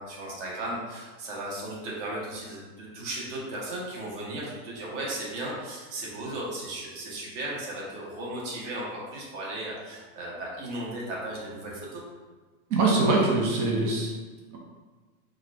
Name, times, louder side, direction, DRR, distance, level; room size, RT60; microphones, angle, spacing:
voice 1, 0.0-12.0, right 1 dB, 50° right, -4 dB, 1.0 m, -36 dB
voice 2, 12.7-14.1, right 3 dB, 85° right, -2 dB, 0.9 m, -23 dB
4.3 x 2.4 x 2.3 m, 1.4 s
supercardioid pair, 180°, 44 cm